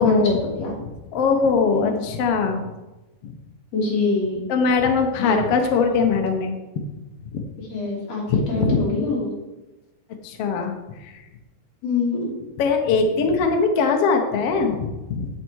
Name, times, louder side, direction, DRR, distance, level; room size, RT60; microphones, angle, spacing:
voice 1, 0.0-0.4 0.8-2.6 3.2-3.3 4.5-6.8 7.3-7.4 8.3-8.8 10.2-10.7 11.0-11.1 12.6-15.3, left 5 dB, 75° left, 4 dB, 1.3 m, -21 dB
voice 2, 3.7-4.4 5.2-5.3 7.7-8.2 8.5-9.3 11.8-12.3, left 3 dB, 50° left, -4 dB, 4.1 m, -24 dB
10.0 x 8.2 x 4.6 m, 1.1 s
omnidirectional pair, 4.1 m